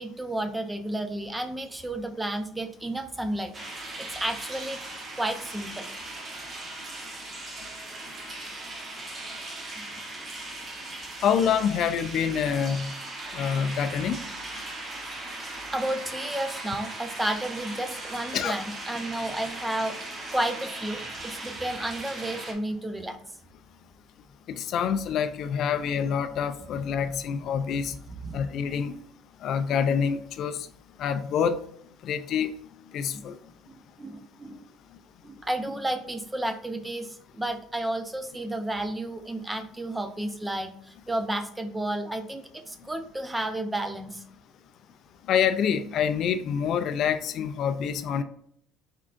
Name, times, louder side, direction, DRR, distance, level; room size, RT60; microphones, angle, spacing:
voice 1, 0.0-4.8 5.2-5.9 9.8-9.9 15.2-15.3 15.7-23.2 26.7-26.8 28.2-28.6 33.1-33.2 33.7-34.7 35.2-44.2, right 1 dB, 10° right, 8 dB, 0.5 m, -32 dB
sound 1, 3.5-22.5, right 2 dB, 35° right, 1.0 m, -38 dB
voice 2, 11.2-12.9 13.3-14.2 18.3-18.6 24.5-28.0 28.3-29.0 29.4-30.7 31.0-31.6 32.0-32.5 32.9-33.4 45.3-48.2, left 7 dB, 55° left, 10 dB, 0.3 m, -26 dB
4.4 x 3.7 x 2.5 m, 0.67 s
cardioid pair, 110°, 0 cm